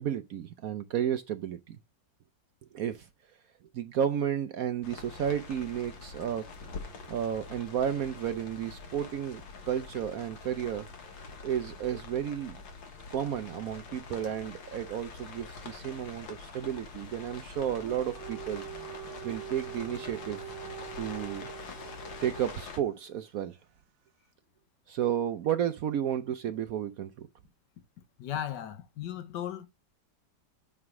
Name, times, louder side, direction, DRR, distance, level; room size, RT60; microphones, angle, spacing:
voice 1, 0.0-1.8 2.7-3.1 3.7-6.5 7.1-9.4 9.7-10.9 11.4-12.6 13.1-18.6 19.2-20.4 21.0-21.5 22.2-23.6 24.9-27.1, right 9 dB, 65° right, 0.9 m, -32 dB
sound 1, 4.8-22.8, left 4 dB, 85° left, 2.1 m, -45 dB
Dog, 17.6-22.8, right 12 dB, 85° right, 0.6 m, -44 dB
voice 2, 28.2-29.7, left 10 dB, 70° left, 1.4 m, -36 dB
8.8 x 3.5 x 4.8 m
omnidirectional pair, 2.0 m